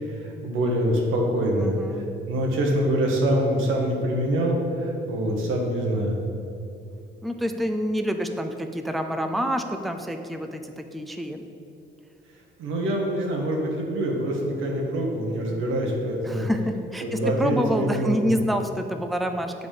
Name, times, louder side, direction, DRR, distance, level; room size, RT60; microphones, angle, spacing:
voice 1, 0.4-1.7 2.3-6.2 12.6-16.5 17.0-18.3, right 1 dB, 90° right, 0 dB, 1.2 m, -25 dB
voice 2, 1.6-2.1 7.2-11.5 16.2-19.5, equal, ahead, 5 dB, 0.4 m, -27 dB
7.3 x 4.0 x 5.1 m, 2.7 s
cardioid pair, 90°, 20 cm